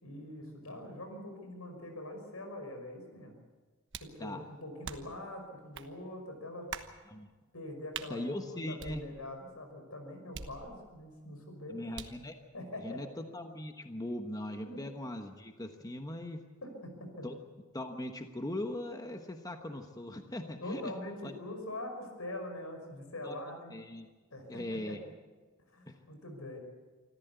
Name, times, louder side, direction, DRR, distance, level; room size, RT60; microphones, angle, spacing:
voice 1, 0.0-3.3 4.0-6.7 7.5-11.8 12.5-13.1 14.6-14.8 16.6-17.3 20.6-23.7 24.3-25.0 25.7-26.6, left 1 dB, 85° left, 4 dB, 5.6 m, -43 dB
sound 1, 3.9-4.2 4.8-5.2 5.7-5.9 6.7-7.0 7.9-8.1 8.8-9.4 10.3-11.0 11.9-12.3, right 6 dB, 60° right, 1.3 m, -44 dB
voice 2, 8.1-9.0 11.7-12.3 12.8-16.4 17.2-17.4 17.7-20.9 21.2-21.3 23.2-23.4 23.7-24.1 24.5-25.0 25.9-26.0, left 1 dB, 15° left, 5 dB, 1.1 m, -40 dB
25.5 x 14.5 x 8.2 m, 1.3 s
head